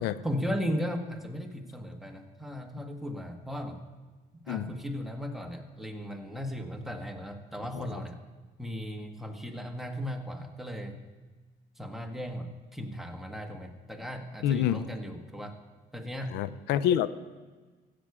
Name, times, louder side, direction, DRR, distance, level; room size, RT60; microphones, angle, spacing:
voice 1, 0.2-3.8 4.5-8.2 8.6-10.9 11.8-15.5 15.9-16.3, equal, ahead, 3 dB, 1.3 m, -36 dB
voice 2, 14.4-14.8 16.3-17.1, left 10 dB, 90° left, 15 dB, 0.5 m, -27 dB
15.0 x 8.3 x 4.8 m, 1.4 s
cardioid pair, 110°, 17 cm